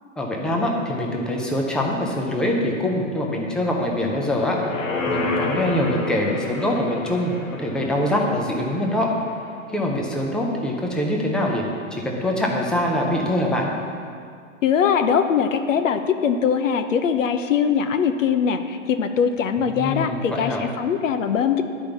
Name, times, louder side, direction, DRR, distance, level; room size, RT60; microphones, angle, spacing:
voice 1, 0.2-4.6 5.1-9.1 9.7-11.6 11.9-13.7 19.6-20.7, left 1 dB, ahead, -1 dB, 0.4 m, -24 dB
sound 1, 4.1-9.5 9.9-10.0, left 3 dB, 90° left, 1.5 m, -30 dB
voice 2, 14.6-21.6, left 7 dB, 75° left, 8 dB, 0.8 m, -21 dB
10.0 x 5.1 x 7.0 m, 2.3 s
hypercardioid pair, 135°, 39 cm